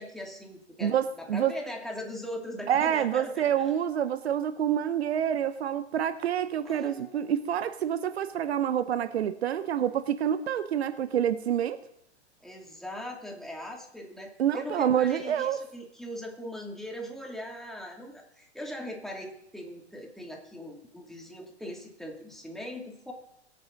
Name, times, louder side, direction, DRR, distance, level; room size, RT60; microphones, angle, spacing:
voice 1, 0.0-3.7 6.6-7.3 12.4-23.1, left 1 dB, ahead, 0 dB, 2.7 m, -40 dB
voice 2, 0.8-1.5 2.7-11.8 14.4-15.6, right 9 dB, 70° right, 12 dB, 0.9 m, -27 dB
22.0 x 8.8 x 4.0 m, 0.76 s
hypercardioid pair, 105°, 33 cm